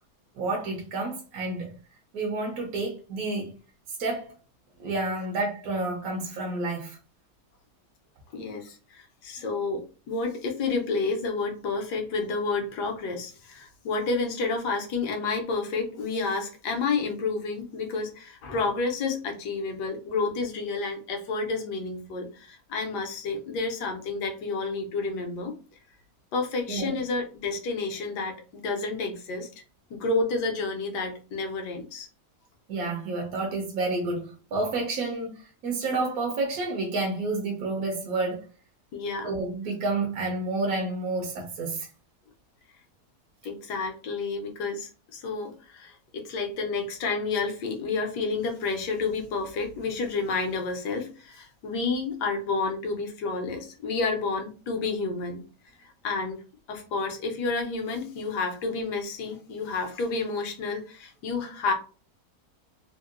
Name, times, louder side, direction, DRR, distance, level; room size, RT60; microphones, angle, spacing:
voice 1, 0.4-1.7 2.1-3.5 3.9-4.3 4.8-7.0 26.7-26.9 32.7-38.5 39.2-41.9, right 3 dB, 65° right, 1.1 m, -30 dB
voice 2, 8.3-25.5 26.3-29.5 29.9-32.1 38.9-39.3 43.4-55.4 55.8-56.4 56.7-61.7, left 4 dB, 75° left, 1.3 m, -30 dB
3.6 x 2.1 x 2.4 m
omnidirectional pair, 1.8 m